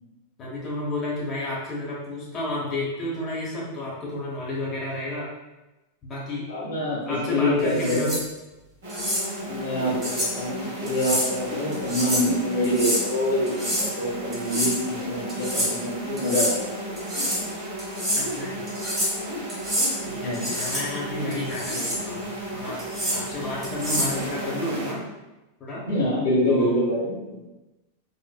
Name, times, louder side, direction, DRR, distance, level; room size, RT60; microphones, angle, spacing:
voice 1, 0.4-5.3 6.0-6.4 7.0-8.1 18.2-18.7 20.0-22.8 23.1-25.0 25.6-25.8 26.5-26.7, left 1 dB, 25° left, -6 dB, 1.0 m, -31 dB
voice 2, 6.5-8.1 9.4-16.7 20.2-20.5 25.9-27.4, left 1 dB, 75° left, -7 dB, 1.3 m, -26 dB
sound 1, 7.7-8.2 8.9-9.2 10.0-10.3 10.9-11.3 11.7-12.3 12.6-13.0 13.5-13.9 14.3-14.8 15.3-15.7 16.2-16.5 17.0-17.4 17.8-18.2 18.7-19.2 19.5-19.9 20.3-20.8 21.3-22.0 22.8-23.2 23.6-24.2, equal, 25° right, 1.5 m, -27 dB
sound 2, 8.8-24.9, right 1 dB, 60° right, 1.1 m, -34 dB
4.2 x 2.5 x 2.3 m, 1.0 s
figure-of-eight pair, 90°, 0 cm